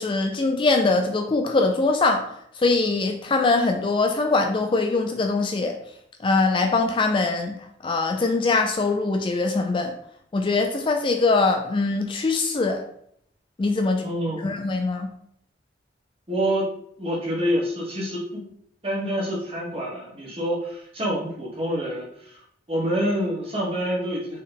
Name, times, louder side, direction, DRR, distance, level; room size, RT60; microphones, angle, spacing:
voice 1, 0.0-2.2 2.6-5.7 6.2-7.6 7.8-9.9 10.3-12.8 13.6-14.1 14.4-15.1, left 3 dB, 30° left, 4 dB, 0.3 m, -22 dB
voice 2, 14.0-14.6 16.3-18.4 18.8-22.4 22.7-24.4, equal, 30° right, -4 dB, 1.4 m, -27 dB
4.5 x 3.2 x 3.4 m, 0.68 s
head